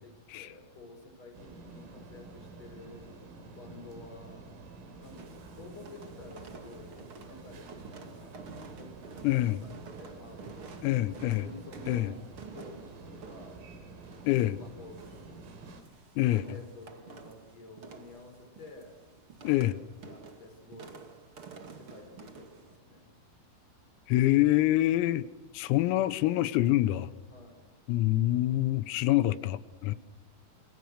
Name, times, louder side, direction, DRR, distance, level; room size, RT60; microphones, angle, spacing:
voice 1, 0.0-3.1 3.6-4.5 5.0-8.4 8.7-12.2 12.5-13.7 14.3-15.4 16.3-19.0 19.9-21.1 21.7-23.1 27.3-27.7 29.9-30.0, left 2 dB, 30° left, 7.0 m, -51 dB
sound 1, 1.3-15.8, right 3 dB, 80° right, 6.3 m, -49 dB
sound 2, 5.0-22.8, right 4 dB, 45° right, 1.8 m, -50 dB
voice 2, 9.2-9.6 10.8-11.5 11.9-12.1 14.3-14.6 16.2-16.5 19.5-19.8 24.1-25.3 25.5-27.1 27.9-30.0, left 15 dB, 90° left, 3.8 m, -26 dB
27.5 x 27.5 x 6.6 m
omnidirectional pair, 6.0 m